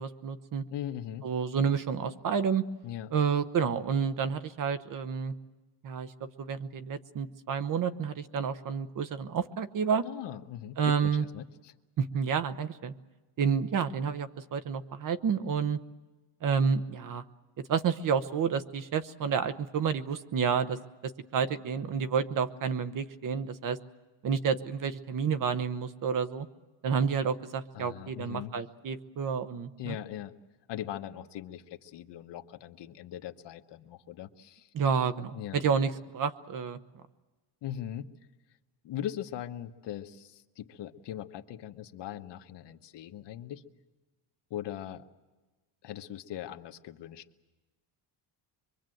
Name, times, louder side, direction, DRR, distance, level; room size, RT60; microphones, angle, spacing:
voice 1, 0.0-0.6 1.2-2.6 3.1-5.3 5.8-10.1 10.8-11.2 12.0-12.9 13.4-15.8 16.4-17.2 17.7-20.8 21.0-23.8 24.2-26.5 26.8-30.0 34.7-36.8, right 6 dB, 45° right, 12 dB, 1.0 m, -30 dB
voice 2, 0.7-1.3 2.8-3.1 10.0-11.7 27.7-28.6 29.8-30.3 30.7-34.7 35.3-35.7 37.6-38.1 38.8-43.6 44.5-45.1 45.8-47.2, left 11 dB, 65° left, 6 dB, 1.2 m, -40 dB
24.5 x 23.5 x 7.8 m, 1.2 s
cardioid pair, 175°, 46 cm